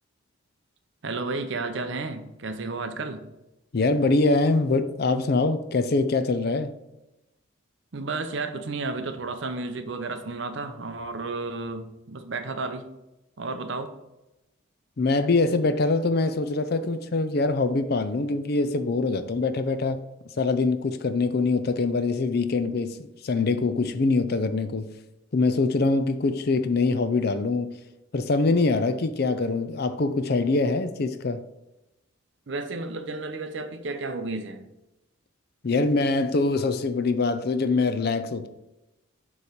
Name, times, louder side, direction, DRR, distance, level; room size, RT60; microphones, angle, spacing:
voice 1, 1.0-3.2 7.9-12.9 13.4-13.9 32.5-34.6, right 3 dB, 60° right, 0.6 m, -32 dB
voice 2, 3.7-6.7 15.0-20.0 20.4-23.0 23.2-24.9 25.3-27.7 28.1-31.4 35.6-38.5, left 3 dB, 50° left, 0.5 m, -24 dB
6.9 x 3.2 x 5.1 m
head